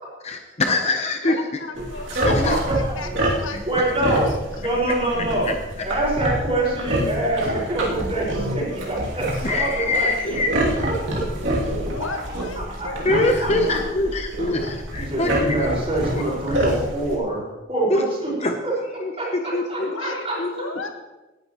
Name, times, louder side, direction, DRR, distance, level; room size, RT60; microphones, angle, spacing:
voice 1, 0.2-1.4 2.2-2.6 3.5-3.6 5.5-5.9 9.4-10.7 13.0-15.8 16.1-16.2 17.9-18.0 18.4-18.6 19.0-19.9 20.4-20.5, left 2 dB, 35° left, 5 dB, 0.8 m, -24 dB
voice 2, 1.2-4.4 11.8-13.1 19.8-20.9, left 3 dB, 80° left, 4 dB, 1.5 m, -35 dB
sound 1, 1.7-17.2, right 1 dB, 65° right, 2.7 m, -27 dB
voice 3, 2.3-2.9 3.7-4.3 4.6-5.5 5.8-10.4 12.0-13.8 15.0-17.4 17.7-18.3 18.6-18.7 19.2-19.3 19.7-20.3, right 2 dB, 30° right, -3 dB, 5.1 m, -25 dB
18.5 x 11.0 x 3.0 m, 1.1 s
head